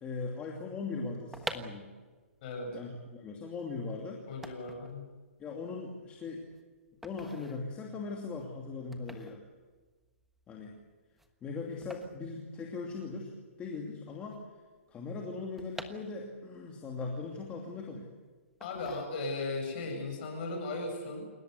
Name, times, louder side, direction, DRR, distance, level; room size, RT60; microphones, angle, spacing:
voice 1, 0.0-1.9 2.7-4.2 5.4-6.4 7.0-9.4 10.5-10.8 11.4-13.3 13.6-14.4 14.9-18.1, left 4 dB, 15° left, 0 dB, 2.7 m, -39 dB
sound 1, 1.1-13.2 13.5-13.6 13.7-16.6 17.0-18.1 18.6-19.6 20.0-20.2, right 1 dB, ahead, 1.3 m, -48 dB
voice 2, 2.4-2.8 4.3-5.1 18.6-21.3, left 2 dB, 40° left, 2 dB, 7.5 m, -37 dB
29.0 x 17.5 x 8.2 m, 1.3 s
hypercardioid pair, 155°, 8 cm